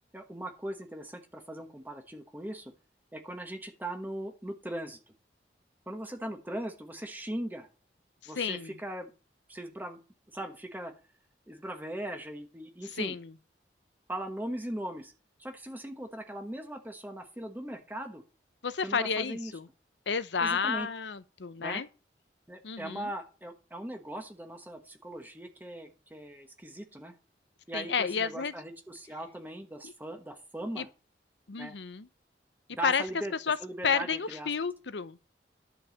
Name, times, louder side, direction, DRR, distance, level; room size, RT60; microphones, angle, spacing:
voice 1, 0.1-2.7 3.1-5.0 5.9-7.7 8.3-9.1 9.5-10.0 10.3-10.9 11.5-13.2 14.1-15.1 15.4-18.2 18.8-19.5 20.4-20.9 21.6-21.8 22.5-27.1 27.7-30.9 31.6-31.8 32.7-33.3 33.6-34.5, right 1 dB, 10° right, 1.2 m, -39 dB
voice 2, 8.4-8.7 13.0-13.3 18.6-19.7 20.1-21.9 22.6-23.1 27.7-28.5 30.8-30.9 31.5-32.1 32.8-33.0 33.5-33.6 33.8-35.2, left 6 dB, 80° left, 0.7 m, -31 dB
11.0 x 4.8 x 7.1 m
head